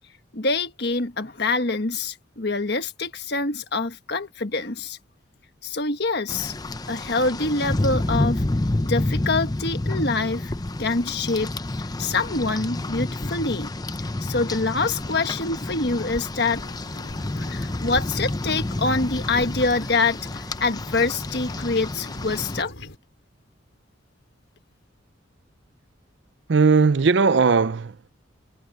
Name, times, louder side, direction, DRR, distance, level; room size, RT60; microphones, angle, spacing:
voice 1, 0.3-5.0 5.6-6.5 6.9-8.4 8.8-10.5 10.8-11.5 12.0-13.7 14.2-16.6 17.5-22.7, left 3 dB, 55° left, 1.5 m, -25 dB
Rain, 6.3-22.6, left 2 dB, 20° left, 0.6 m, -29 dB
sound 1, 16.5-23.0, left 2 dB, 75° left, 5.6 m, -44 dB
voice 2, 26.5-28.1, right 4 dB, 65° right, 0.5 m, -18 dB
head